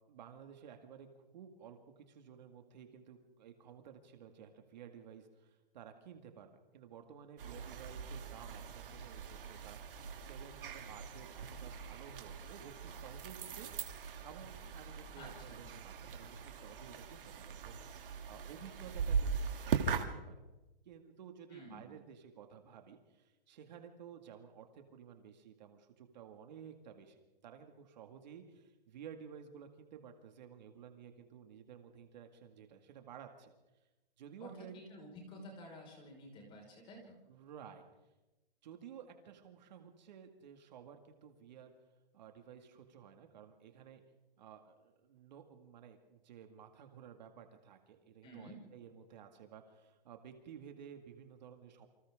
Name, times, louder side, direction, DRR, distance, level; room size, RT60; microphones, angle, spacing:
voice 1, 0.1-1.1 1.3-1.8 2.1-20.4 20.9-33.5 34.2-34.8 37.3-37.9 38.6-41.7 42.1-44.0 44.4-51.9, right 8 dB, 50° right, 5 dB, 2.2 m, -54 dB
sound 1, 7.4-20.1, right 6 dB, 65° right, 2.7 m, -40 dB
voice 2, 15.1-15.6 21.5-21.9 34.4-37.2 48.2-48.6, equal, 15° left, 1 dB, 5.4 m, -52 dB
28.5 x 25.5 x 3.8 m, 1.1 s
hypercardioid pair, 160°, 29 cm